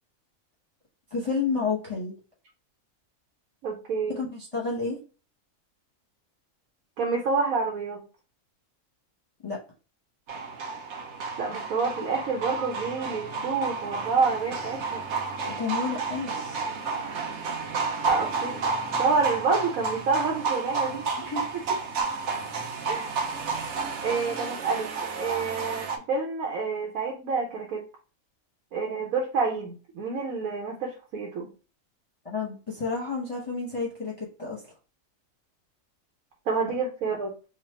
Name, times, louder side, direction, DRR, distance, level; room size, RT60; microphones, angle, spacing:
voice 1, 1.1-2.2 4.1-5.0 9.4-9.6 15.5-16.6 21.3-21.4 32.2-34.6, left 4 dB, 30° left, -4 dB, 0.8 m, -30 dB
voice 2, 3.6-4.1 7.0-8.0 11.4-15.0 18.1-18.6 19.0-21.3 22.9-23.1 24.0-27.8 28.7-31.5 36.5-37.3, right 4 dB, 90° right, 0 dB, 1.2 m, -28 dB
sound 1, 10.3-26.0, right 4 dB, 60° right, 0.9 m, -31 dB
3.2 x 2.4 x 4.1 m, 0.35 s
omnidirectional pair, 1.4 m